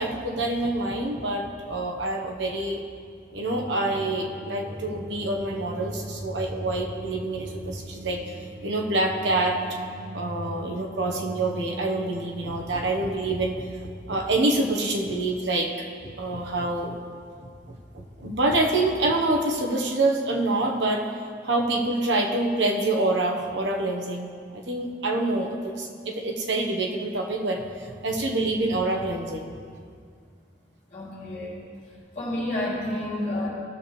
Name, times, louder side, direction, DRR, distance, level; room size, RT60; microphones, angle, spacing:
voice 1, 0.0-2.8 3.3-8.2 8.6-9.6 10.1-16.9 17.7-21.1 21.4-29.6, right 2 dB, 75° right, 1 dB, 1.1 m, -26 dB
sound 1, 3.5-12.2, right 1 dB, 15° right, 1.0 m, -39 dB
voice 2, 30.9-31.6 32.1-33.5, left 1 dB, 45° left, -6 dB, 2.9 m, -29 dB
16.5 x 6.9 x 3.2 m, 2.2 s
head